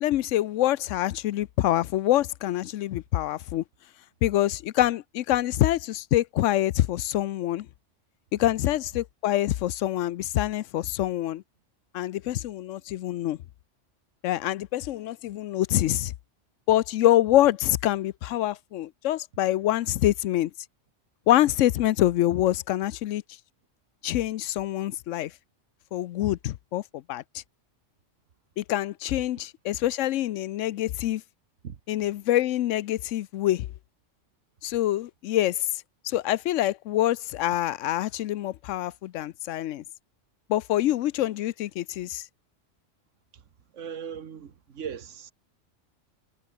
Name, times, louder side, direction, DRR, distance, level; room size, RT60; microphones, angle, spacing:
voice 1, 0.0-3.6 4.2-7.7 8.3-11.4 11.9-13.4 14.2-16.1 16.7-20.5 21.3-23.2 24.0-25.3 25.9-27.4 28.6-31.2 31.9-33.7 34.6-35.7 36.0-39.8 40.5-42.3, left 14 dB, 90° left, 0.9 m, -25 dB
voice 2, 43.3-45.3, right 7 dB, 80° right, 1.6 m, -39 dB
omnidirectional pair, 1.3 m